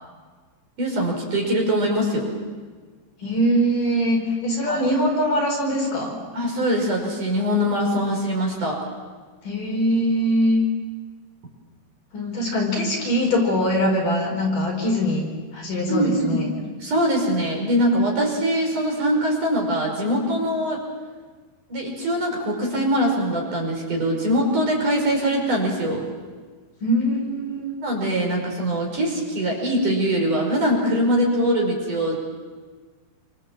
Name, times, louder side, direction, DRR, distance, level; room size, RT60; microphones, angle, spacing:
voice 1, 0.8-2.3 4.7-4.8 6.3-8.8 15.9-16.5 16.8-20.8 21.7-26.0 27.8-32.2, equal, 40° right, 0 dB, 6.6 m, -22 dB
voice 2, 3.2-6.2 9.4-10.6 12.1-15.3 15.5-16.5 26.8-27.8, equal, 45° left, 0 dB, 6.3 m, -22 dB
29.5 x 26.5 x 7.6 m, 1.4 s
omnidirectional pair, 5.6 m